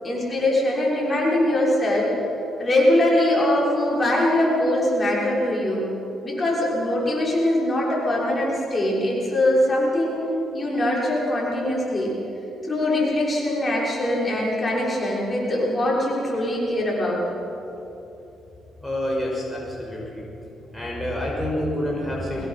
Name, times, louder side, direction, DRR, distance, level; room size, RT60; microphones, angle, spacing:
voice 1, 0.0-2.1 2.6-5.9 6.2-10.2 10.5-12.1 12.6-17.2, left 1 dB, 25° left, -5 dB, 6.2 m, -22 dB
voice 2, 18.8-20.3 20.6-22.5, left 1 dB, 5° left, -4 dB, 5.9 m, -28 dB
23.0 x 21.0 x 5.9 m, 2.9 s
cardioid pair, 90°, 0 cm